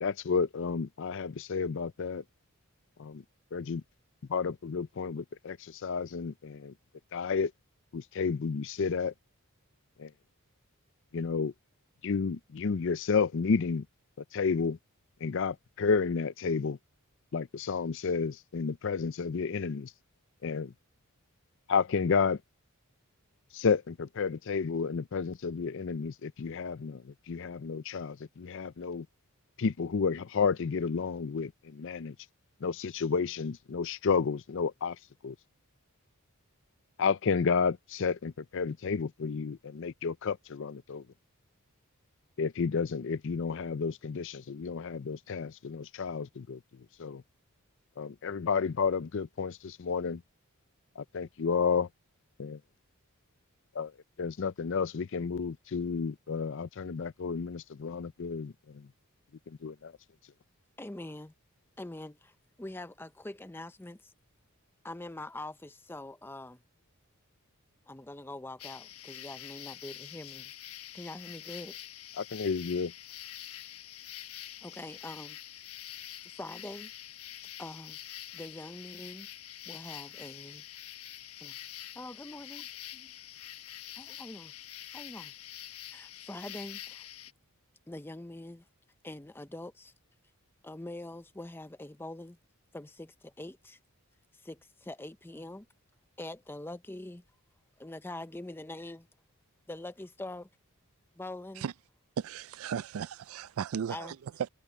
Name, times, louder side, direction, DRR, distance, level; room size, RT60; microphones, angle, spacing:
voice 1, 0.0-2.2 3.0-3.2 3.5-3.8 4.3-6.7 7.1-7.5 7.9-9.1 10.0-10.1 11.1-11.5 12.0-13.8 14.3-14.8 15.2-16.8 17.3-19.9 20.4-20.7 21.7-22.4 23.5-29.1 29.6-32.1 32.6-35.0 35.2-35.3 37.0-41.0 42.4-46.6 47.0-47.2 48.0-50.2 51.0-51.9 52.4-52.6 53.8-53.9 54.2-58.8 59.6-59.9 72.2-72.9, left 5 dB, 55° left, 0.5 m, -31 dB
voice 2, 60.8-61.3 61.8-64.1 64.8-66.6 67.9-70.5 70.9-71.8 74.6-75.4 76.2-76.9 77.6-78.0 78.3-79.3 79.7-80.6 81.4-81.6 81.9-83.1 84.0-84.5 84.9-85.3 85.9-87.1 87.9-88.6 89.0-89.9 90.6-92.4 92.7-93.8 94.4-95.7 96.2-97.2 97.8-99.1 99.7-100.5 101.2-101.7 103.9-104.1, left 1 dB, 10° left, 0.6 m, -44 dB
sound 1, 68.6-87.3, left 12 dB, 75° left, 1.1 m, -46 dB
voice 3, 102.2-104.5, right 7 dB, 70° right, 0.3 m, -36 dB
head